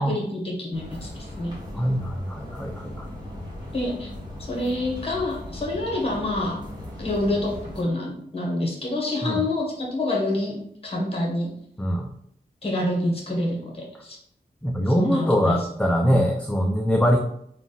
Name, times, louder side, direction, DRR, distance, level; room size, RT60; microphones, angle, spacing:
voice 1, 0.0-1.5 3.7-4.1 4.4-6.6 7.0-11.5 12.6-14.2 14.9-15.7 16.1-16.2, left 1 dB, 35° left, -1 dB, 1.2 m, -27 dB
sound 1, 0.7-7.8, left 1 dB, 25° right, 1.4 m, -38 dB
voice 2, 1.7-3.1 9.2-9.4 11.8-12.1 14.6-17.2, equal, 5° left, 2 dB, 0.3 m, -23 dB
3.7 x 2.3 x 3.9 m, 0.72 s
wide cardioid pair, 115°, 18 cm